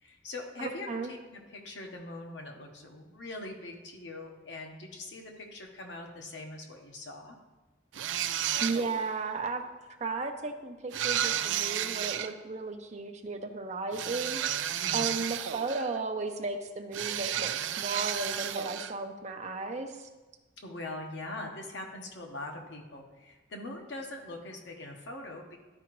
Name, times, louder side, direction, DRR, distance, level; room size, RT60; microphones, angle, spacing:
voice 1, 0.0-7.4 14.8-15.2 20.6-25.6, left 2 dB, 75° left, 2 dB, 1.1 m, -42 dB
voice 2, 0.6-1.1 8.6-9.6 10.0-14.4 14.9-20.1, right 3 dB, 40° right, 4 dB, 0.7 m, -35 dB
sound 1, 7.9-9.1 10.9-12.3 13.9-16.0 16.9-18.9, right 10 dB, 90° right, 0.4 m, -32 dB
12.0 x 4.9 x 3.1 m, 1.2 s
head